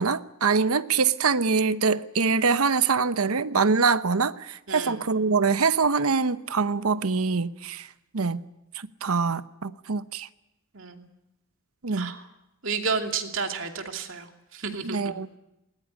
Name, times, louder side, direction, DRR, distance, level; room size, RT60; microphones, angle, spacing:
voice 1, 0.0-7.9 8.1-8.4 9.0-10.3 11.8-12.1 14.8-15.3, right 5 dB, 85° right, 0.9 m, -24 dB
voice 2, 4.7-5.0 10.7-11.1 11.9-12.2 12.6-14.3 14.5-15.2, right 5 dB, 65° right, 2.7 m, -31 dB
20.0 x 19.5 x 10.0 m
head